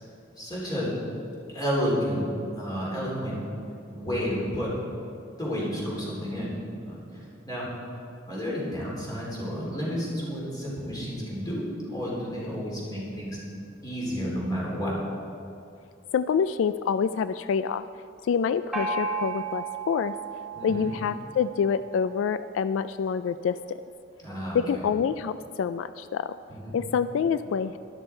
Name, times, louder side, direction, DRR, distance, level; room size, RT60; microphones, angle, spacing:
voice 1, 0.4-0.9 1.5-2.2 2.6-3.4 3.9-4.8 5.4-6.5 6.8-7.7 8.3-11.6 11.9-13.4 13.8-15.0 20.5-20.9 24.2-24.6 26.5-26.8, equal, 20° left, -5 dB, 3.5 m, -31 dB
voice 2, 16.1-17.8 18.2-20.1 20.6-23.8 24.5-26.3 26.7-27.8, left 6 dB, 85° left, 13 dB, 0.3 m, -27 dB
Gong, 18.7-22.2, right 4 dB, ahead, 2.0 m, -34 dB
12.5 x 11.5 x 4.5 m, 2.6 s
head